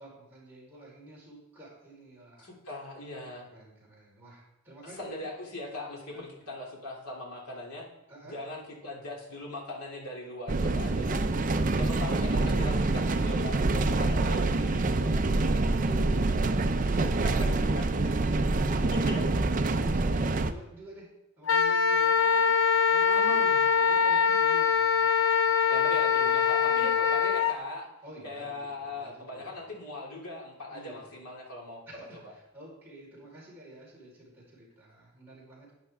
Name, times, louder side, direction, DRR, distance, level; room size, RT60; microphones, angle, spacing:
voice 1, 0.0-2.5 3.5-5.3 6.1-6.3 8.1-8.4 15.8-21.1 21.4-22.6 22.9-25.1 26.6-27.1 28.0-29.6 30.7-31.2 31.9-35.7, equal, 10° right, -7 dB, 4.3 m, -49 dB
voice 2, 2.4-3.5 5.0-7.9 8.2-11.3 11.8-15.8 17.0-17.5 17.7-17.8 18.9-19.2 23.1-23.6 25.7-27.9 28.2-31.9 32.1-32.3, left 1 dB, 90° left, -2 dB, 2.7 m, -40 dB
sound 1, 10.5-20.5, right 2 dB, 35° right, 0.5 m, -26 dB
Wind instrument woodwind instrument, 21.5-27.5, left 6 dB, 60° left, 0.5 m, -23 dB
12.0 x 9.4 x 3.6 m, 0.89 s
head